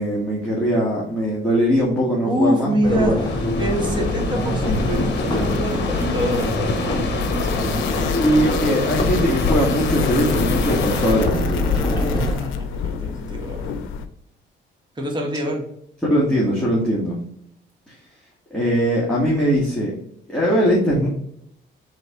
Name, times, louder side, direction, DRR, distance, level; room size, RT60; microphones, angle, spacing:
voice 1, 0.0-3.3 8.2-11.7 16.1-17.2 18.5-19.9 20.3-21.1, equal, 5° left, -7 dB, 1.7 m, -20 dB
voice 2, 2.2-3.1 3.6-7.8 12.2-13.7 14.9-15.6, equal, 25° right, 0 dB, 1.5 m, -25 dB
sound 1, 2.8-12.3, left 1 dB, 20° left, 1.4 m, -24 dB
sound 2, 2.9-11.3, left 5 dB, 60° left, 0.9 m, -30 dB
sound 3, 4.6-14.1, left 6 dB, 90° left, 0.5 m, -29 dB
4.0 x 3.2 x 4.1 m, 0.72 s
cardioid pair, 90°, 20 cm